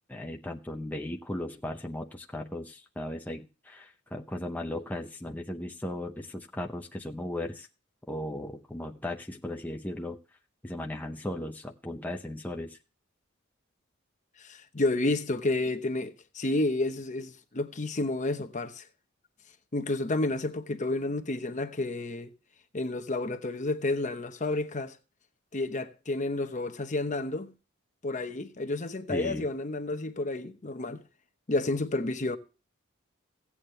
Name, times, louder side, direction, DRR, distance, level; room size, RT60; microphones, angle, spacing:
voice 1, 0.1-7.7 8.1-10.2 10.6-12.8 29.1-29.5, left 1 dB, 10° left, 0.8 m, -36 dB
voice 2, 14.4-18.8 19.7-22.3 22.7-25.0 25.5-27.5 28.0-31.0 31.5-32.4, left 2 dB, 35° left, 1.0 m, -30 dB
16.5 x 8.7 x 3.3 m
head